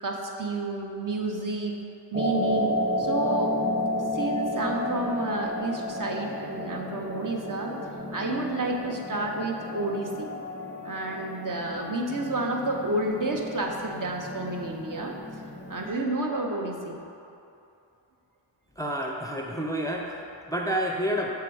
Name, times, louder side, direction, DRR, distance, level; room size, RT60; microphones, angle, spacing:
voice 1, 0.0-1.8 2.1-3.6 4.0-7.7 8.1-10.3 10.8-15.2 15.7-17.0, right 2 dB, 45° right, 1 dB, 0.8 m, -30 dB
sound 1, 2.1-15.9, left 1 dB, 15° right, 0.8 m, -32 dB
voice 2, 18.8-21.3, equal, 10° left, 0 dB, 0.4 m, -29 dB
6.5 x 3.5 x 4.7 m, 2.7 s
cardioid pair, 50°, 44 cm